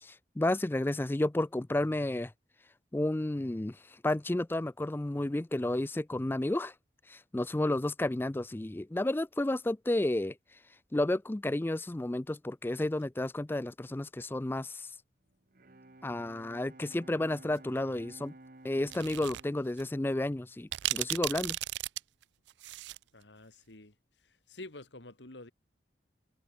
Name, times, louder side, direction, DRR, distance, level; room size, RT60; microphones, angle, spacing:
voice 1, 0.0-2.3 2.9-3.8 4.0-6.7 7.1-10.3 10.9-14.9 16.0-18.3 18.6-21.6, left 1 dB, 10° left, 0.3 m, -31 dB
Bowed string instrument, 15.3-21.1, right 2 dB, 50° right, 1.2 m, -54 dB
sound 1, 18.9-19.4 19.8-19.9 20.7-23.0, right 16 dB, 75° right, 0.3 m, -35 dB
voice 2, 23.1-23.9 24.2-25.5, left 2 dB, 80° left, 2.4 m, -48 dB
head